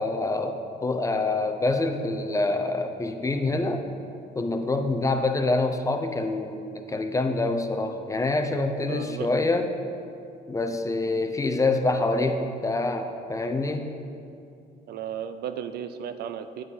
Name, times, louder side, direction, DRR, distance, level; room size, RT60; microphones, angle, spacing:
voice 1, 0.0-3.8 4.3-9.7 10.5-13.9, left 2 dB, 20° left, 6 dB, 0.7 m, -26 dB
voice 2, 8.9-9.3 14.9-16.6, right 8 dB, 65° right, 10 dB, 0.5 m, -34 dB
8.9 x 8.8 x 4.2 m, 2.6 s
cardioid pair, 110°, 18 cm